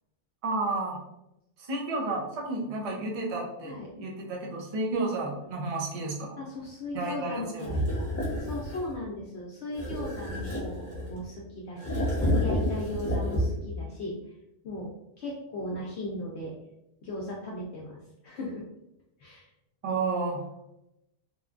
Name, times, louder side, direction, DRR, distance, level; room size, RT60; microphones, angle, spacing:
voice 1, 0.4-1.0 1.6-6.4 6.9-7.7 19.8-20.5, right 3 dB, 40° right, -3 dB, 0.5 m, -31 dB
voice 2, 6.4-8.1 8.4-14.3 14.6-14.9 15.2-16.5 17.0-18.0 18.2-18.6 19.2-19.5, left 1 dB, 70° left, -3 dB, 0.8 m, -37 dB
sound 1, 7.6-8.9 9.7-11.3 11.8-13.8, equal, 15° left, 0.7 m, -29 dB
3.0 x 2.2 x 2.4 m, 0.86 s
omnidirectional pair, 1.3 m